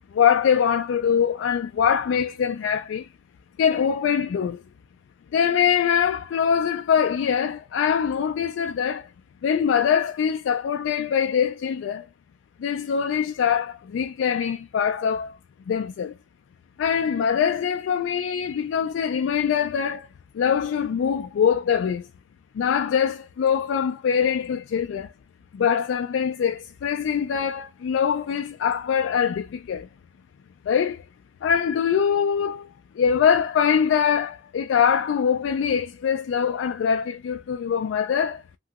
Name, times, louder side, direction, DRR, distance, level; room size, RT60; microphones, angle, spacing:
voice 1, 0.1-3.1 3.6-4.6 5.3-9.1 9.4-12.1 12.6-15.4 15.7-16.1 16.8-20.1 20.3-22.1 22.5-25.1 25.5-29.9 30.7-31.0 31.4-32.7 32.9-38.4, left 7 dB, 85° left, 0.3 m, -23 dB
3.0 x 2.7 x 2.3 m
head